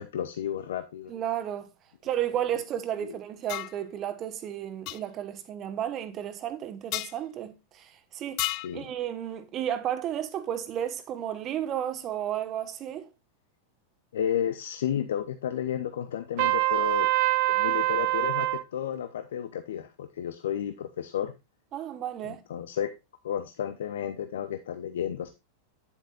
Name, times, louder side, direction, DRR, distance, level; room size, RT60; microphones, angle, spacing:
voice 1, 0.0-1.1 3.0-3.2 8.4-8.9 14.1-17.1 17.5-21.3 22.2-22.9 23.2-25.3, left 9 dB, 60° left, 0.8 m, -32 dB
voice 2, 1.1-1.7 2.0-8.5 8.7-13.1 21.7-22.4, right 10 dB, 30° right, 1.5 m, -33 dB
sound 1, 3.5-3.8 4.9-5.0 6.9-7.1 8.4-8.8, left 19 dB, 40° left, 0.3 m, -31 dB
Trumpet, 16.4-18.6, right 17 dB, 50° right, 0.7 m, -24 dB
10.0 x 8.3 x 2.5 m
figure-of-eight pair, 90°, 0 cm